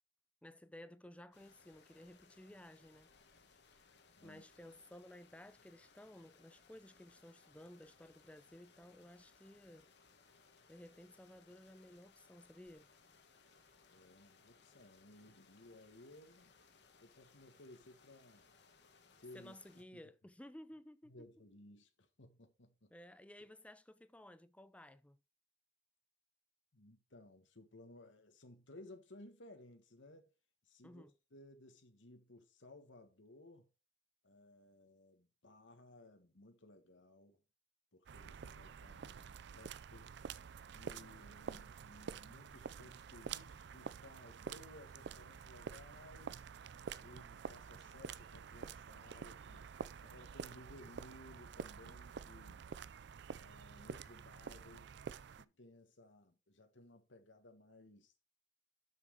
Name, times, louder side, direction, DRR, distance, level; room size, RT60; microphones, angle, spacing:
voice 1, 0.4-3.1 4.2-9.9 10.7-12.9 19.3-21.3 22.9-25.2 30.8-31.1, left 1 dB, 5° left, 0.5 m, -56 dB
sound 1, 1.3-19.8, left 4 dB, 65° left, 1.5 m, -67 dB
voice 2, 13.9-16.5 17.0-18.5 19.2-20.0 21.1-22.9 26.7-30.3 30.6-31.0 31.3-33.7 34.2-37.4 37.9-40.1 40.6-46.4 47.0-49.7 50.0-52.6 53.4-54.9 55.3-58.1, left 1 dB, 80° left, 1.5 m, -59 dB
sound 2, 38.1-55.4, right 6 dB, 65° right, 0.4 m, -49 dB
6.9 x 6.2 x 4.7 m
head